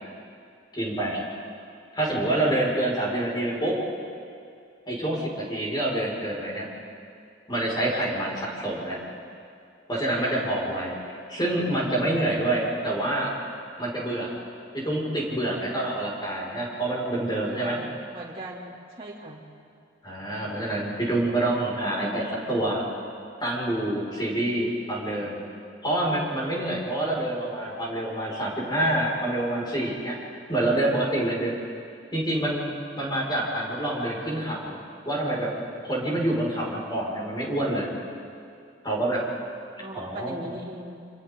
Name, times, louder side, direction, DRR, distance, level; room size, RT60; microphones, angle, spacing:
voice 1, 0.7-1.2 1.9-3.8 4.9-6.7 7.5-9.0 9.9-13.3 13.8-14.3 14.7-17.8 20.0-22.9 23.4-25.4 25.8-30.1 30.5-31.6 32.1-34.8 35.1-35.5 35.8-37.9 38.8-39.2 39.9-40.4, right 1 dB, 25° left, -4 dB, 5.5 m, -27 dB
voice 2, 17.5-19.4 39.8-41.1, right 1 dB, 30° right, -7 dB, 2.6 m, -39 dB
28.0 x 27.0 x 3.8 m, 2.4 s
head